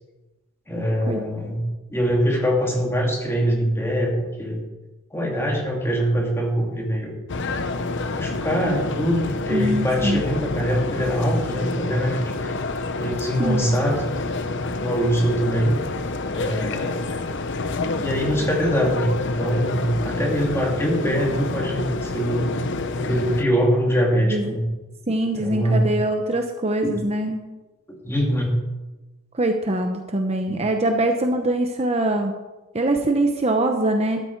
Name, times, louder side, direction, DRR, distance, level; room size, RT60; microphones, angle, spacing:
voice 1, 0.7-4.6 5.1-7.2 8.1-12.6 12.9-14.0 14.8-15.7 16.3-17.1 18.0-24.7 25.3-26.0 26.8-26.9 27.9-28.5 30.5-30.6, equal, 10° left, -1 dB, 2.6 m, -23 dB
sound 1, 7.3-23.4, left 3 dB, 60° left, 0.8 m, -28 dB
voice 2, 9.5-10.2 13.4-13.7 24.3-24.5 25.1-27.4 29.3-32.3 32.7-34.2, right 1 dB, 30° right, 4 dB, 0.9 m, -23 dB
12.5 x 12.5 x 4.7 m, 1.1 s
head